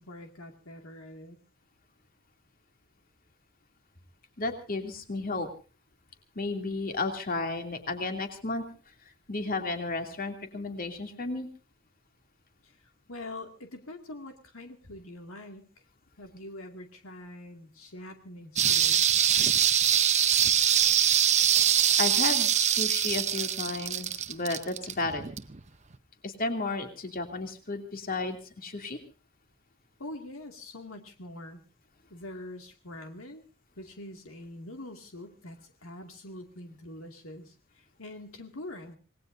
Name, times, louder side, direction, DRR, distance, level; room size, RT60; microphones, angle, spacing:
voice 1, 0.0-1.4 12.6-15.7 16.2-19.0 30.0-31.6 32.1-33.4 33.8-39.0, left 1 dB, 75° left, 4 dB, 2.3 m, -44 dB
voice 2, 4.4-5.5 6.3-8.6 9.3-11.5 22.0-25.2 26.2-29.0, left 3 dB, 45° left, 4 dB, 2.8 m, -33 dB
sound 1, 18.6-25.6 25.9-26.0, right 9 dB, 35° right, 0.8 m, -24 dB
27.0 x 19.0 x 2.7 m, 0.35 s
head